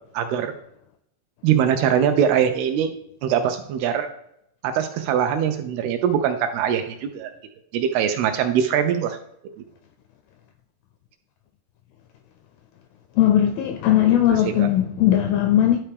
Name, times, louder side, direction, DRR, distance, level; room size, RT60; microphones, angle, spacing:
voice 1, 0.1-0.5 1.4-2.9 3.2-4.1 4.6-7.3 7.7-9.2 14.0-14.2 14.6-14.7, right 8 dB, 80° right, 2.4 m, -22 dB
voice 2, 13.2-15.8, left 11 dB, 85° left, 2.2 m, -18 dB
12.0 x 4.4 x 3.4 m
omnidirectional pair, 4.8 m